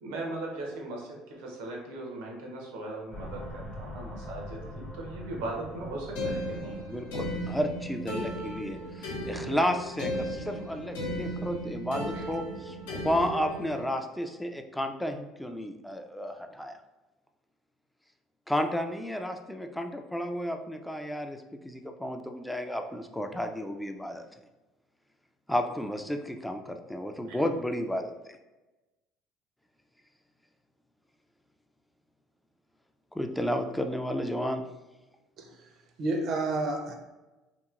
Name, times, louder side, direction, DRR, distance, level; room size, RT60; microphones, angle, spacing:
voice 1, 0.0-6.7 12.1-12.2 27.3-27.4, right 2 dB, 85° right, -1 dB, 0.7 m, -38 dB
sound 1, 3.1-9.4, left 1 dB, 25° left, 0.7 m, -44 dB
sound 2, 6.2-13.8, equal, 90° left, 0.6 m, -35 dB
voice 2, 6.9-16.8 18.5-24.3 25.5-28.1 33.1-34.6, equal, 5° left, 5 dB, 0.3 m, -32 dB
voice 3, 35.4-35.7 36.0-37.0, right 2 dB, 55° right, 4 dB, 0.5 m, -30 dB
2.9 x 2.7 x 2.4 m, 1.1 s
supercardioid pair, 90°, 0 cm